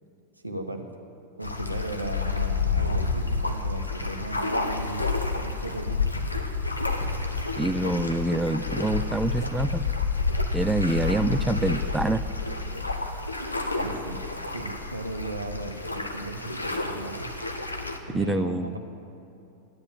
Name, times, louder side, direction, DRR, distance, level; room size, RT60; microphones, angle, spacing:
voice 1, 0.4-0.8 1.4-6.3 13.7-17.3 18.1-18.8, right 2 dB, 85° right, 5 dB, 1.2 m, -36 dB
sound 1, 1.4-18.0, left 4 dB, 85° left, 1.0 m, -29 dB
voice 2, 7.6-9.8 10.5-12.2 18.1-18.8, right 2 dB, 5° right, 13 dB, 0.4 m, -26 dB
12.5 x 9.8 x 7.8 m, 2.7 s
figure-of-eight pair, 90°, 0 cm